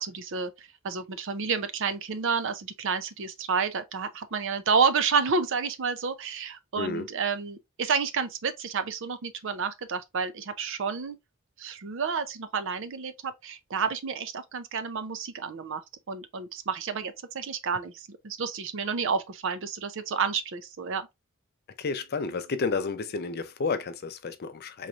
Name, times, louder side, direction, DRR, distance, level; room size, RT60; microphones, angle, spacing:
voice 1, 0.0-11.2 11.6-15.8 16.1-21.1, right 5 dB, 65° right, 0.5 m, -30 dB
voice 2, 6.8-7.1 21.8-24.9, left 4 dB, 50° left, 0.5 m, -31 dB
4.1 x 3.1 x 2.4 m
head